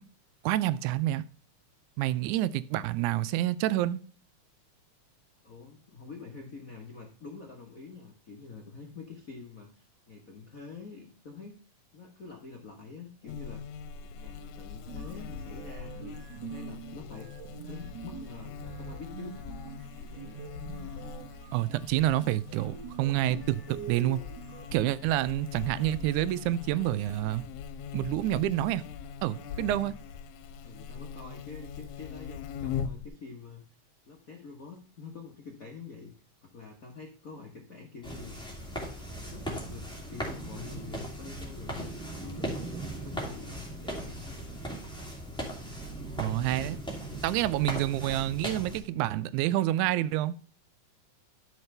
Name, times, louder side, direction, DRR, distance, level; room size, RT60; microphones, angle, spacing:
voice 1, 0.4-1.2 2.0-4.0 21.5-24.2 24.7-27.4 27.9-28.8 29.2-29.9 46.2-46.8 47.1-50.4, right 14 dB, 90° right, 2.0 m, -28 dB
voice 2, 5.4-11.5 11.9-13.6 14.1-17.3 17.6-19.4 20.0-20.4 20.9-21.2 29.7-29.9 30.6-33.6 34.1-36.1 36.4-38.4 39.0-44.4, left 4 dB, 70° left, 0.8 m, -46 dB
Buzz, 13.3-33.1, left 7 dB, 90° left, 2.0 m, -42 dB
sound 1, 14.9-25.2, right 6 dB, 50° right, 1.3 m, -45 dB
sound 2, 38.0-48.8, right 1 dB, ahead, 2.1 m, -38 dB
12.5 x 4.8 x 3.3 m
omnidirectional pair, 3.4 m